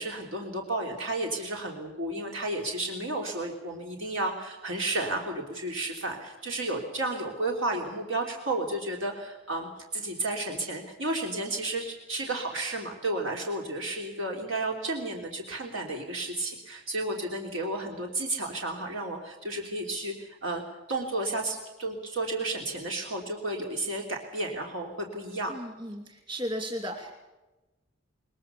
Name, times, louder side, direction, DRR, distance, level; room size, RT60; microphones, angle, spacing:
voice 1, 0.0-20.6 20.9-25.5, right 2 dB, 80° right, 1 dB, 3.2 m, -32 dB
voice 2, 25.5-27.2, equal, 25° right, 3 dB, 2.7 m, -35 dB
21.5 x 21.5 x 6.9 m, 1.1 s
head